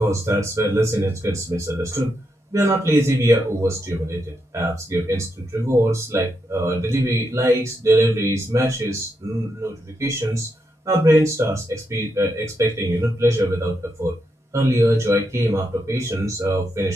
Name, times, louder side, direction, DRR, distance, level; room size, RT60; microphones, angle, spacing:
voice 1, 0.0-2.1 2.5-10.5 10.9-14.1 14.5-16.9, right 1 dB, 15° right, 1.0 m, -21 dB
9.0 x 3.9 x 2.7 m
head